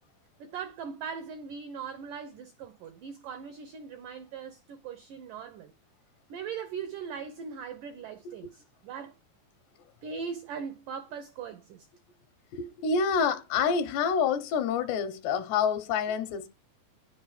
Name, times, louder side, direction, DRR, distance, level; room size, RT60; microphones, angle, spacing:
voice 1, 0.4-5.7 6.3-9.2 10.0-11.9, right 6 dB, 85° right, 1.8 m, -40 dB
voice 2, 12.5-16.5, left 6 dB, 75° left, 3.2 m, -27 dB
10.0 x 7.2 x 5.0 m
omnidirectional pair, 5.0 m